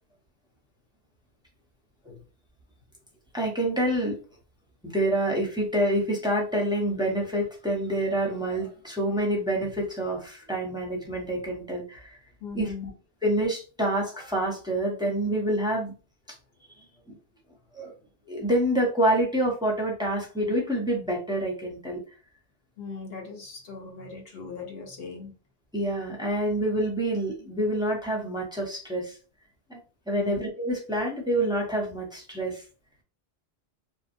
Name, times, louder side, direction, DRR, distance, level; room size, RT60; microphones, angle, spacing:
voice 1, 3.3-4.2 4.8-12.2 12.5-12.7 13.2-15.9 17.1-17.2 17.7-17.9 18.3-22.0 25.7-29.2 29.7-29.8 30.1-32.6, right 1 dB, 5° right, -1 dB, 0.5 m, -27 dB
voice 2, 12.4-12.9 22.8-25.3 30.1-30.4, left 4 dB, 65° left, 1 dB, 0.9 m, -39 dB
2.8 x 2.0 x 2.5 m, 0.34 s
omnidirectional pair, 1.1 m